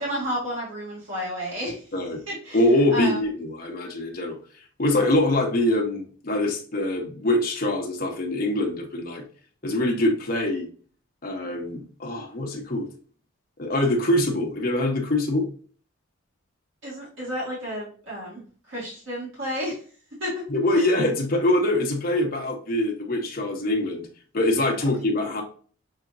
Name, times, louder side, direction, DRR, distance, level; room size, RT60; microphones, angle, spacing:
voice 1, 0.0-1.9 2.3-3.2 16.8-19.8 20.2-20.4 20.7-20.9, equal, 65° right, -6 dB, 2.1 m, -32 dB
voice 2, 2.5-4.4 4.8-9.2 9.6-10.7 11.2-12.9 13.6-15.5 20.5-24.1 24.3-25.4, left 1 dB, 45° left, 2 dB, 0.9 m, -24 dB
6.3 x 2.9 x 2.5 m, 0.43 s
head